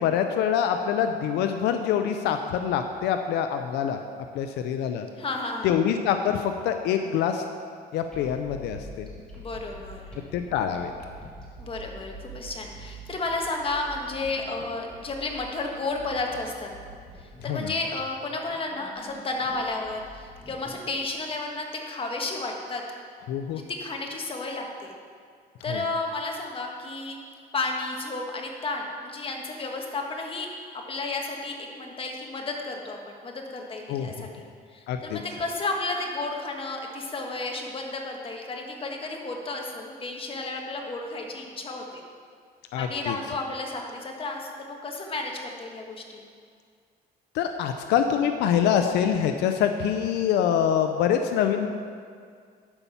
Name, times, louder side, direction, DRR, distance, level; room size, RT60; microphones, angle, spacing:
voice 1, 0.0-4.0 4.3-5.1 5.6-7.4 7.9-9.1 10.3-10.9 17.5-17.7 23.3-23.6 25.7-25.8 33.9-34.2 34.9-35.2 42.7-43.2 47.3-51.7, left 8 dB, 85° left, 6 dB, 0.6 m, -25 dB
voice 2, 5.2-5.7 9.4-10.2 11.6-16.7 17.2-22.8 23.5-24.9 25.6-27.2 27.5-30.5 30.9-34.4 34.7-42.0 42.8-46.2, left 3 dB, 30° left, 1 dB, 1.6 m, -32 dB
sound 1, 8.1-21.2, right 1 dB, 5° left, 2.9 m, -46 dB
11.5 x 5.5 x 7.1 m, 2.1 s
cardioid pair, 110°, 17 cm